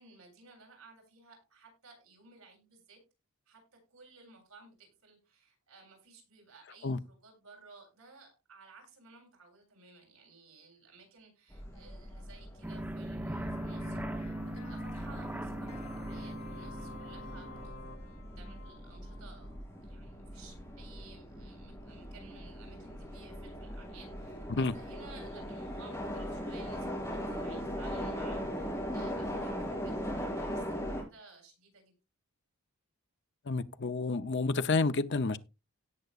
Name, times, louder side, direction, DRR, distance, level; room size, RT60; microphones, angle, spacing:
voice 1, 0.0-3.0 3.5-3.6 3.9-19.6 19.8-31.9, right 4 dB, 75° right, 8.0 m, -57 dB
sound 1, 11.5-31.0, equal, 15° left, 5.5 m, -40 dB
sound 2, 12.6-17.7, right 1 dB, 10° right, 0.9 m, -39 dB
sound 3, 13.4-19.6, left 2 dB, 75° left, 1.9 m, -50 dB
voice 2, 33.5-35.4, left 3 dB, 50° left, 0.7 m, -29 dB
17.5 x 8.0 x 2.5 m
head